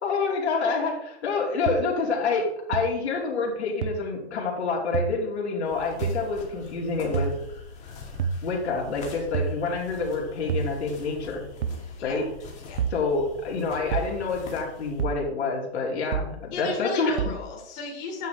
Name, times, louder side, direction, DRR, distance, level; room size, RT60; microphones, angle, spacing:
voice 1, 0.0-7.3 8.4-11.4 12.0-12.3 12.9-17.2, left 4 dB, 75° left, -2 dB, 2.7 m, -27 dB
sound 1, 1.7-1.8 2.7-2.8 3.8-3.9 4.9-5.1 6.0-6.2 7.1-7.3 8.2-8.4 9.3-9.6 10.5-10.7 11.6-11.8 12.8-13.0 13.9-14.1 15.0-15.2 16.1-16.3 17.2-17.4, right 7 dB, 70° right, 1.0 m, -27 dB
sound 2, 5.6-15.0, left 4 dB, 20° left, 2.1 m, -43 dB
voice 2, 16.5-18.3, left 3 dB, 40° left, -1 dB, 2.4 m, -33 dB
9.3 x 5.8 x 3.5 m, 0.79 s
hypercardioid pair, 145°, 34 cm